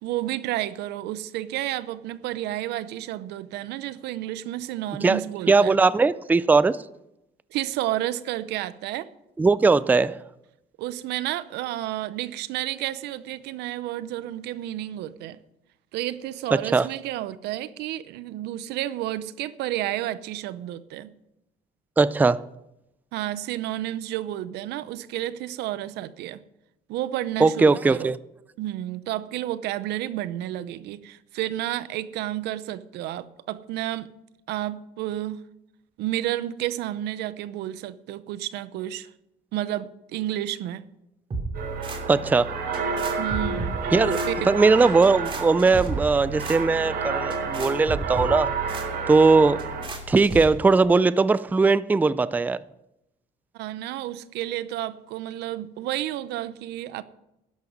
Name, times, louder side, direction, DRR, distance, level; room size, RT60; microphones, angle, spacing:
voice 1, 0.0-5.8 7.5-9.1 10.8-15.4 15.9-21.1 23.1-26.4 26.9-28.1 28.6-34.1 34.5-35.4 36.0-39.1 39.5-40.9 43.2-43.8 44.2-44.5 53.5-57.0, right 13 dB, 85° right, 0.7 m, -31 dB
voice 2, 5.0-6.8 9.4-10.2 16.5-16.9 22.0-22.4 27.4-28.2 42.1-42.5 43.9-48.5 49.1-49.7 50.1-52.6, right 4 dB, 10° right, 0.4 m, -19 dB
sound 1, 41.3-50.5, right 2 dB, 30° right, 2.8 m, -34 dB
sound 2, 41.5-49.9, right 5 dB, 70° right, 2.8 m, -30 dB
12.5 x 10.5 x 5.3 m
cardioid pair, 110°, 17 cm